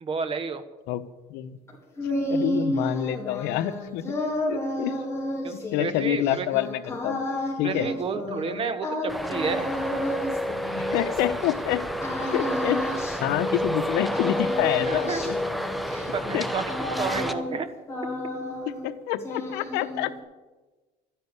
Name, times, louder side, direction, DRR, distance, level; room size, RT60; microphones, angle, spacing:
voice 1, 0.0-0.6 5.4-6.5 7.6-9.7 14.9-15.2 15.9-16.7 17.0-17.7, right 5 dB, 35° right, 12 dB, 1.3 m, -30 dB
sound 1, 1.7-11.5 12.0-13.9 14.1-17.6 17.9-18.9 19.2-20.2, left 1 dB, 15° left, 4.1 m, -32 dB
voice 2, 2.3-4.1 4.5-5.0 5.5-7.2 7.6-7.9 10.8-12.0 12.3-12.8 13.2-15.4 16.3-16.5 18.8-20.1, left 13 dB, 80° left, 12 dB, 1.0 m, -27 dB
Traffic noise roadway noise, 9.1-17.3, equal, ahead, 0.9 m, -29 dB
12.5 x 10.5 x 9.6 m, 1.2 s
cardioid pair, 130°, 17 cm